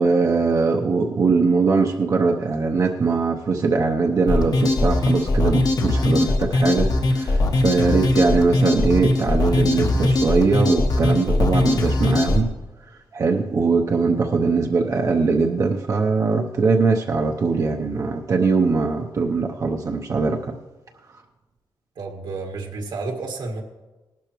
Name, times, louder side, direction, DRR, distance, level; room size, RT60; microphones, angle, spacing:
voice 1, 0.0-12.5 12.9-20.6, right 4 dB, 45° right, 2 dB, 0.7 m, -21 dB
sound 1, 4.3-12.4, left 2 dB, 55° left, 1.1 m, -20 dB
voice 2, 22.0-23.6, right 3 dB, 75° right, 3 dB, 1.8 m, -31 dB
19.0 x 11.5 x 3.1 m, 1.1 s
wide cardioid pair, 160°, 8 cm